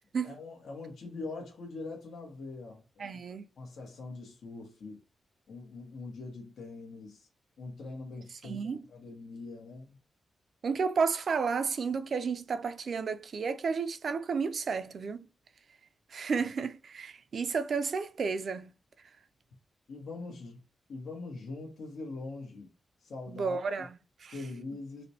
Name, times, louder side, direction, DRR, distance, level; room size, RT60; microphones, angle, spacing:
voice 1, 0.2-3.2 3.6-5.0 5.5-7.3 7.6-10.0 19.9-20.6 20.9-22.7 23.0-23.6 24.3-25.0, left 3 dB, 80° left, 1.0 m, -43 dB
voice 2, 3.0-3.5 8.4-8.8 10.6-15.3 16.1-18.7 23.3-24.3, right 5 dB, 60° right, 0.4 m, -32 dB
4.0 x 2.2 x 2.7 m
cardioid pair, 85°, 0 cm